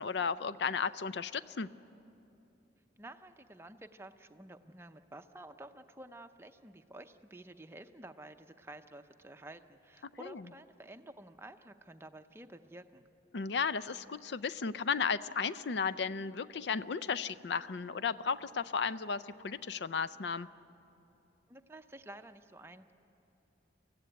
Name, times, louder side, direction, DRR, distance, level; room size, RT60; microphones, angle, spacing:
voice 1, 0.0-1.7 10.2-10.4 13.3-20.5, left 5 dB, 65° left, 15 dB, 0.5 m, -34 dB
voice 2, 3.0-13.1 21.5-22.9, right 1 dB, 15° right, 7 dB, 0.6 m, -51 dB
24.0 x 15.5 x 9.3 m, 2.9 s
head